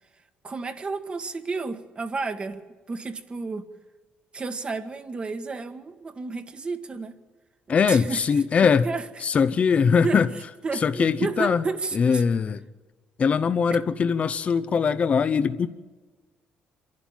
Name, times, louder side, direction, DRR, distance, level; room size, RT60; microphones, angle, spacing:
voice 1, 0.4-2.6 2.9-3.7 4.3-7.2 7.7-9.2 10.0-12.2, right 4 dB, 30° right, 1.5 m, -32 dB
voice 2, 7.7-8.8 9.2-10.3 10.8-11.6 11.9-12.6 13.2-15.7, left 6 dB, 40° left, 0.7 m, -21 dB
25.5 x 11.5 x 9.1 m
cardioid pair, 105°, 3 cm